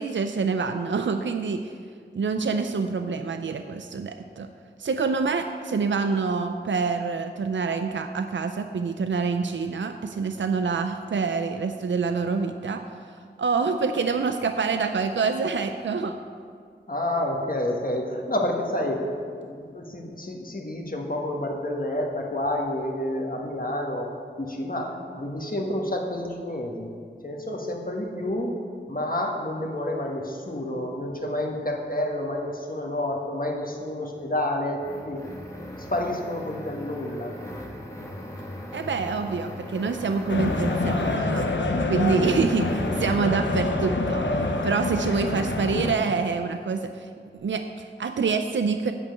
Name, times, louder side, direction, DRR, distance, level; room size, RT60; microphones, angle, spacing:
voice 1, 0.0-1.7 2.1-4.5 4.8-12.8 13.4-16.2 38.7-41.5 41.9-44.3 44.6-48.9, right 5 dB, 85° right, 7 dB, 0.4 m, -26 dB
voice 2, 16.9-24.1 24.4-26.9 27.2-28.5 28.9-35.2 35.9-37.3, left 1 dB, 50° left, 0 dB, 1.5 m, -29 dB
sound 1, 34.1-41.3 42.2-43.4, left 1 dB, 15° left, 1.5 m, -39 dB
sound 2, 40.3-45.9, left 2 dB, 80° left, 0.7 m, -26 dB
8.5 x 5.3 x 7.6 m, 2.1 s
wide cardioid pair, 40°, 19 cm